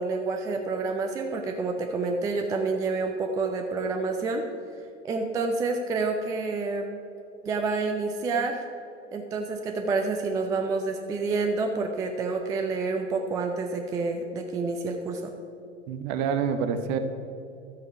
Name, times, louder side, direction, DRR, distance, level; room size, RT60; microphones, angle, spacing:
voice 1, 0.0-4.4 5.0-6.9 7.4-8.6 9.1-15.3, right 3 dB, 10° right, 4 dB, 0.4 m, -28 dB
voice 2, 15.9-17.0, right 7 dB, 40° right, 8 dB, 0.9 m, -27 dB
12.5 x 8.3 x 4.7 m, 2.7 s
figure-of-eight pair, 95°, 37 cm